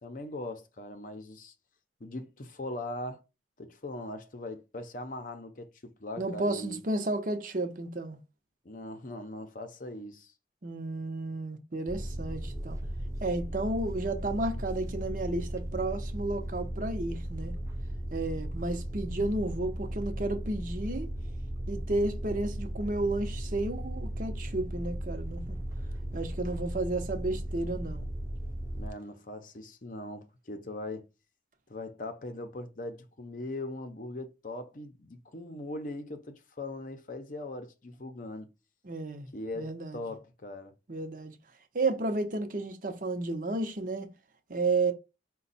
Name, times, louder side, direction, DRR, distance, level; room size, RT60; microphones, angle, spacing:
voice 1, 0.0-1.5 2.0-3.2 3.6-6.8 8.6-10.3 28.7-31.1 31.7-38.5 39.3-40.7, left 2 dB, 50° left, 0.7 m, -40 dB
voice 2, 6.2-8.2 10.6-12.8 13.2-17.5 18.1-21.1 21.7-25.6 26.1-28.1 38.8-39.3 39.6-40.1 40.9-41.3 41.7-44.1 44.5-44.9, right 2 dB, 50° right, 0.8 m, -32 dB
sound 1, 11.9-28.9, right 1 dB, 15° right, 0.4 m, -36 dB
5.1 x 2.2 x 4.0 m
head